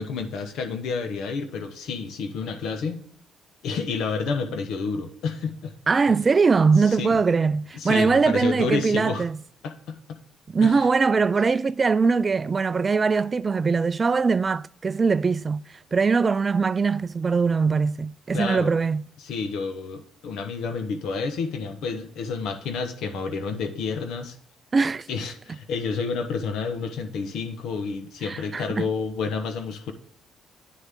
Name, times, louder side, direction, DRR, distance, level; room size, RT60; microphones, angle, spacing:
voice 1, 0.0-3.0 3.6-5.7 6.8-7.2 7.7-9.2 9.6-10.2 10.6-10.8 18.3-18.7 19.2-24.4 25.1-29.9, left 5 dB, 80° left, 1.0 m, -30 dB
voice 2, 5.9-9.4 10.5-15.6 15.9-19.0 24.7-25.1 28.2-28.9, right 4 dB, 30° right, 0.3 m, -21 dB
9.3 x 6.7 x 3.6 m
cardioid pair, 110°, 0 cm